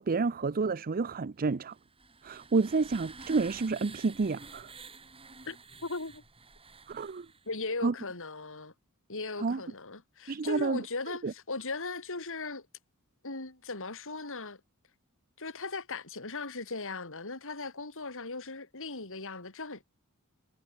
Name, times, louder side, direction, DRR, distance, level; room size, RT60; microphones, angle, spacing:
voice 1, 0.0-1.7 2.2-4.7 6.9-7.3 7.8-7.9 9.4-9.6 10.3-10.8 11.2-11.3, right 4 dB, 40° right, 0.5 m, -29 dB
sound 1, 1.7-7.5, right 4 dB, 25° right, 6.6 m, -50 dB
voice 2, 5.8-6.2 7.5-8.7 9.1-12.7 13.2-14.6 15.4-19.8, left 3 dB, 65° left, 4.3 m, -38 dB
head